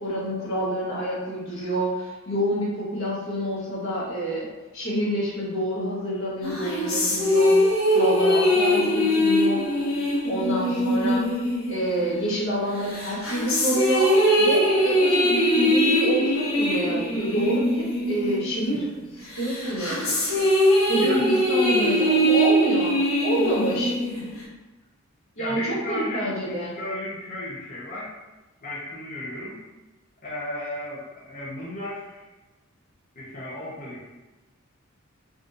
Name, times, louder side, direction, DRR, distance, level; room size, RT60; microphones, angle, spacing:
voice 1, 0.0-4.5 4.7-7.5 7.9-9.6 10.2-11.2 11.7-18.9 19.1-20.5 20.9-22.9 23.2-23.9 25.4-26.7, equal, 75° left, -6 dB, 1.1 m, -27 dB
sound 1, 6.4-12.4 12.9-18.9 19.3-24.4, equal, 90° left, 1.0 m, -22 dB
voice 2, 25.4-28.1 28.6-29.6 30.2-32.2 33.2-34.1, left 1 dB, 40° left, -9 dB, 0.7 m, -34 dB
3.6 x 2.6 x 2.5 m, 1.1 s
head